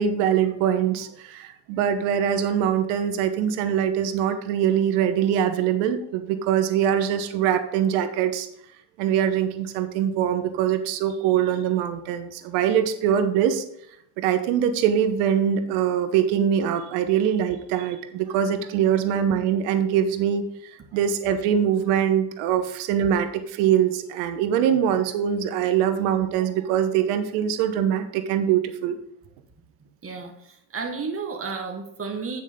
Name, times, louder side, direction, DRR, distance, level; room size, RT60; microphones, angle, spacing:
voice 1, 0.0-8.5 9.0-13.6 14.2-20.5 20.9-29.0, right 9 dB, 85° right, 9 dB, 1.0 m, -23 dB
voice 2, 30.0-32.4, right 4 dB, 30° right, 3 dB, 1.7 m, -32 dB
9.2 x 6.3 x 3.7 m, 0.73 s
supercardioid pair, 70°, 48 cm